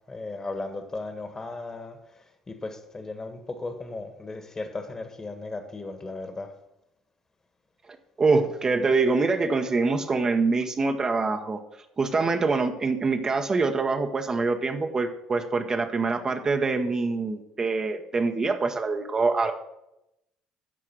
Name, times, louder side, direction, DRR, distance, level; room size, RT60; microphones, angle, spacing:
voice 1, 0.1-6.5, left 3 dB, 25° left, 1.5 m, -36 dB
voice 2, 8.2-11.6 12.0-19.5, right 3 dB, 30° right, 0.9 m, -25 dB
12.5 x 4.8 x 6.1 m
hypercardioid pair, 60°, 2 cm